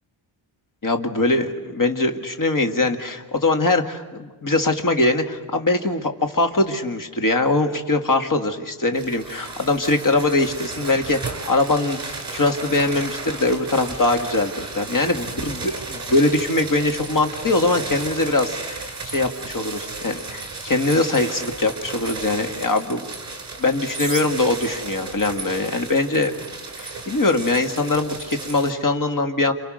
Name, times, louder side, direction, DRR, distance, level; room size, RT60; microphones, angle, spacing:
voice 1, 0.8-23.1 23.6-26.3 26.8-29.5, left 2 dB, 40° left, 6 dB, 2.2 m, -22 dB
sound 1, 8.9-28.7, right 3 dB, 35° right, 5.0 m, -34 dB
29.5 x 28.0 x 6.5 m, 1.2 s
wide cardioid pair, 125°, 47 cm